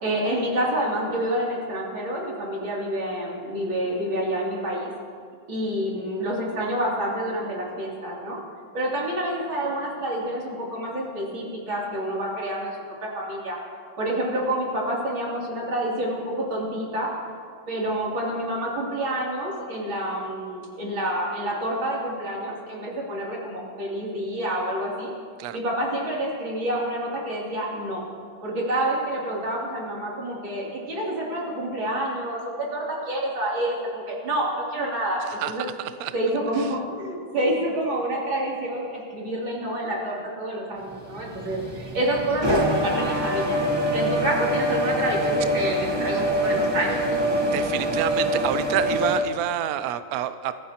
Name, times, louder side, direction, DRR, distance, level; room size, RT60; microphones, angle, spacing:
voice 1, 0.0-4.9 5.5-8.4 8.7-13.6 14.0-17.1 17.7-25.1 25.5-28.0 28.4-35.7 36.1-43.6 43.9-47.2, right 1 dB, 60° right, -4 dB, 3.7 m, -28 dB
voice 2, 35.3-36.1 36.6-36.7 47.4-50.5, right 11 dB, 85° right, 11 dB, 0.8 m, -28 dB
sound 1, 40.9-49.2, equal, 30° right, 0.4 m, -25 dB
23.5 x 15.5 x 2.9 m, 2.1 s
omnidirectional pair, 2.4 m